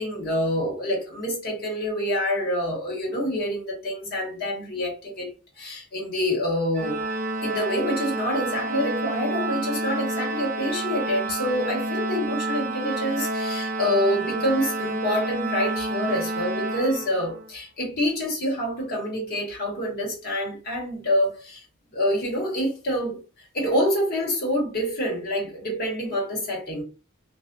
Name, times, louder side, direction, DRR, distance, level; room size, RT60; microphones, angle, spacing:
voice 1, 0.0-5.3 5.6-7.0 7.4-21.6 21.9-26.8, equal, 50° left, 1.2 m, -27 dB
Organ, 6.7-17.5, right 2 dB, 35° right, 0.4 m, -29 dB
2.5 x 2.3 x 2.2 m
head